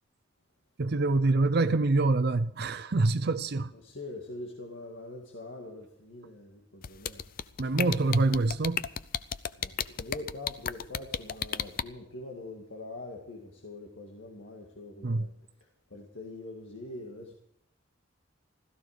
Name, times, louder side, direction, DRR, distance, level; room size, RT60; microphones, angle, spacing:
voice 1, 0.8-3.7 7.6-8.8 15.0-15.3, right 3 dB, 55° right, 0.6 m, -25 dB
voice 2, 3.7-7.3 9.6-15.3 15.9-17.3, left 2 dB, 70° left, 2.1 m, -43 dB
sound 1, 6.8-11.8, left 8 dB, 50° left, 0.5 m, -32 dB
16.0 x 14.0 x 5.1 m
head